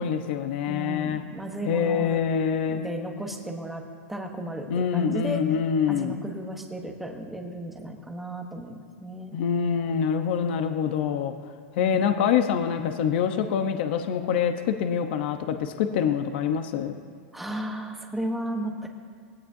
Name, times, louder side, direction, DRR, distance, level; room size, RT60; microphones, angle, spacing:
voice 1, 0.0-1.2 1.7-2.9 4.7-6.2 9.3-11.3 11.8-17.0, left 7 dB, 50° left, 7 dB, 0.9 m, -25 dB
voice 2, 0.7-2.2 2.7-3.8 4.1-5.4 5.9-9.4 11.8-12.1 17.3-18.9, right 1 dB, ahead, 2 dB, 1.1 m, -34 dB
20.5 x 17.0 x 2.7 m, 2.1 s
supercardioid pair, 170°, 7 cm